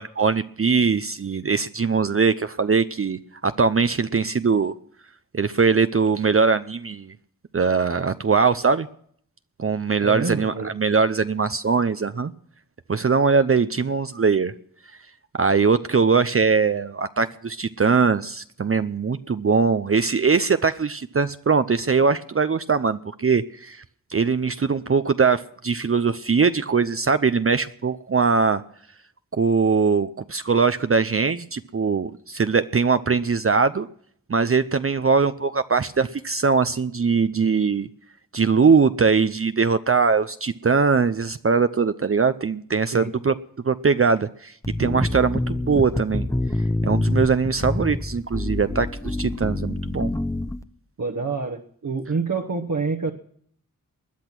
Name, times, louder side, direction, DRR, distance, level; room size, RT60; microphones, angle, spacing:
voice 1, 0.0-4.7 5.3-7.1 7.5-8.9 9.6-12.3 12.9-14.5 15.3-23.8 24.1-28.6 29.3-33.9 34.3-37.9 38.3-43.3 43.6-44.5 44.8-46.2 46.8-50.1, right 5 dB, 40° right, 11 dB, 0.6 m, -21 dB
voice 2, 10.0-10.7 42.9-43.2 51.0-53.1, right 4 dB, 60° right, 2 dB, 1.3 m, -27 dB
sound 1, 44.6-50.6, left 2 dB, 10° left, 0.7 m, -26 dB
20.5 x 10.5 x 6.1 m, 0.63 s
wide cardioid pair, 55°, 34 cm